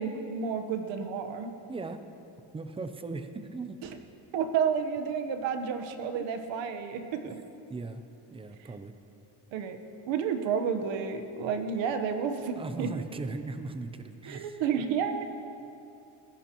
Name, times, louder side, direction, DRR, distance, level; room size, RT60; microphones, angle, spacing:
voice 1, 0.0-1.5 4.3-7.2 9.5-9.8 10.1-12.9 14.3-15.2, right 6 dB, 75° right, 6 dB, 1.2 m, -30 dB
voice 2, 1.7-2.0 2.5-3.8 6.1-6.3 7.2-7.4 7.7-8.9 12.5-14.6, right 3 dB, 10° right, 9 dB, 0.5 m, -38 dB
21.0 x 16.0 x 3.0 m, 2.8 s
cardioid pair, 150°, 46 cm